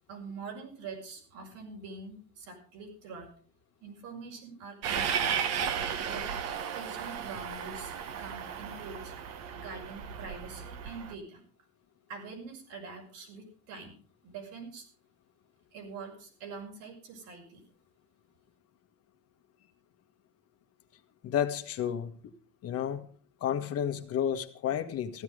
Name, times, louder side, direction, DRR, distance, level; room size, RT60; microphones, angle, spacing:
voice 1, 0.1-3.3 3.8-5.5 6.1-9.1 9.5-11.4 12.1-14.9 15.7-17.6, right 4 dB, 80° right, 1 dB, 6.1 m, -45 dB
Train, 4.8-11.1, right 7 dB, 55° right, 1.5 m, -34 dB
voice 2, 21.2-22.2 22.6-23.1 23.4-25.2, left 9 dB, 50° left, 7 dB, 1.5 m, -31 dB
15.0 x 11.5 x 5.0 m, 0.43 s
cardioid pair, 125°, 30 cm